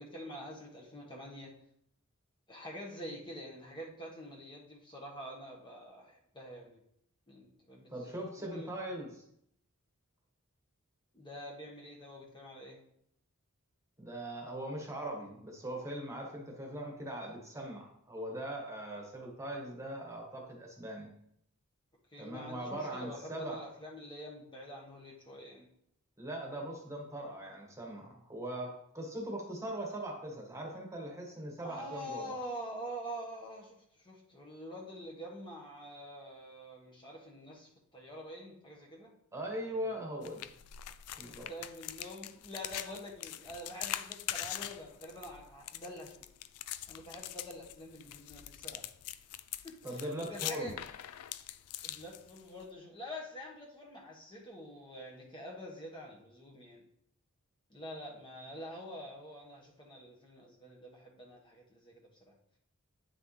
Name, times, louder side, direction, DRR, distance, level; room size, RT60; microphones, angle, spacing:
voice 1, 0.0-1.5 2.5-6.8 7.3-7.9 8.4-8.7 11.1-12.8 22.1-25.7 31.6-39.1 39.7-39.9 41.2-46.2 46.9-48.8 49.6-50.7 51.8-56.8 57.7-61.9, equal, 20° left, -2 dB, 1.3 m, -46 dB
voice 2, 7.9-9.2 14.0-21.1 22.2-23.6 26.2-32.4 39.3-40.5 41.2-41.5 49.8-50.7, right 1 dB, 15° right, 0 dB, 1.4 m, -40 dB
sound 1, 40.2-52.7, left 12 dB, 90° left, 0.4 m, -43 dB
9.3 x 6.2 x 3.2 m, 0.72 s
head